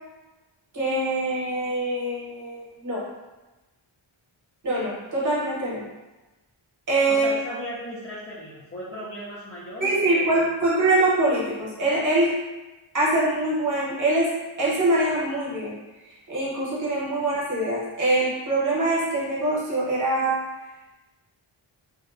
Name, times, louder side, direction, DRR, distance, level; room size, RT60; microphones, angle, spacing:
voice 1, 0.7-3.0 4.6-5.8 6.9-7.4 9.8-12.3 12.9-14.3 14.6-15.7 16.0-20.4, right 2 dB, 40° right, -6 dB, 0.8 m, -24 dB
voice 2, 7.1-10.4, left 1 dB, 30° left, -8 dB, 0.4 m, -36 dB
2.6 x 2.0 x 2.4 m, 1.1 s
wide cardioid pair, 160°, 48 cm